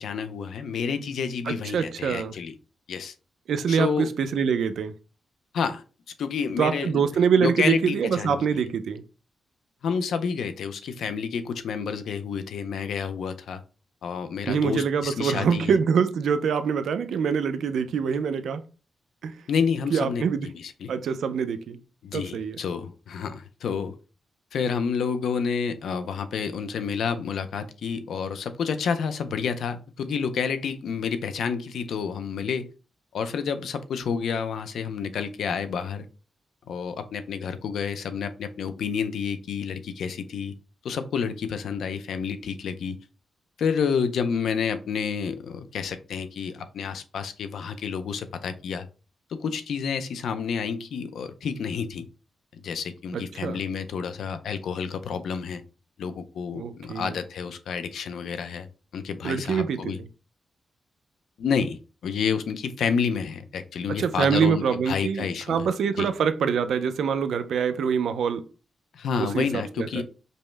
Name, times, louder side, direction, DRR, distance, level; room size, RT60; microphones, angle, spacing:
voice 1, 0.0-2.6 2.9-3.1 3.7-4.1 5.5-5.8 6.2-7.0 7.4-8.4 9.8-13.6 14.0-15.7 19.5-20.9 22.0-24.0 24.5-32.7 33.1-36.1 36.7-40.5 40.8-43.0 43.6-48.9 49.3-52.1 52.6-55.6 56.0-58.7 58.9-60.0 61.4-65.6 66.0-66.1 68.9-70.0, left 6 dB, 80° left, 0.4 m, -29 dB
voice 2, 1.5-2.3 3.5-4.9 6.6-9.0 14.5-18.6 19.2-19.3 19.9-20.5 20.9-21.8 22.1-22.6 53.1-53.6 56.5-57.2 59.2-59.9 64.0-68.4 69.2-69.5 69.8-70.0, right 6 dB, 80° right, 0.4 m, -25 dB
5.2 x 2.1 x 3.2 m
wide cardioid pair, 150°, 0 cm